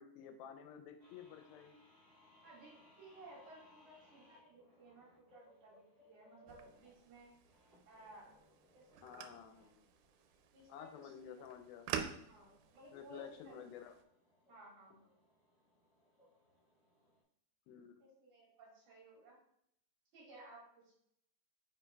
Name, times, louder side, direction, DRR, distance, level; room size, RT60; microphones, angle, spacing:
voice 1, 0.0-1.7 9.0-9.8 10.7-11.9 12.9-13.9 17.7-17.9, left 8 dB, 85° left, 6 dB, 2.3 m, -52 dB
sound 1, 1.0-17.2, left 2 dB, 20° right, 2.1 m, -68 dB
voice 2, 2.4-7.3 7.9-8.4 8.7-9.4 10.5-11.4 12.3-13.6 14.5-15.1 18.0-19.4 20.1-20.9, right 2 dB, 60° right, -4 dB, 2.8 m, -58 dB
sound 2, 6.5-14.0, right 8 dB, 85° right, 2.4 m, -49 dB
9.1 x 5.0 x 2.2 m, 0.72 s
omnidirectional pair, 4.3 m